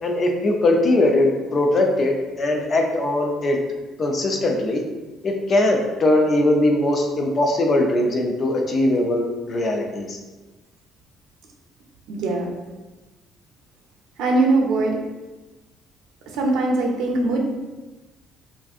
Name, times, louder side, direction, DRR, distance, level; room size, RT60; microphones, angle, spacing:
voice 1, 0.0-3.6 4.0-4.8 5.2-10.2, left 1 dB, 30° left, 1 dB, 0.3 m, -20 dB
voice 2, 12.1-12.5 14.2-15.0 16.3-17.4, right 2 dB, 75° right, 1 dB, 0.5 m, -21 dB
3.4 x 2.5 x 2.4 m, 1.2 s
cardioid pair, 175°, 0 cm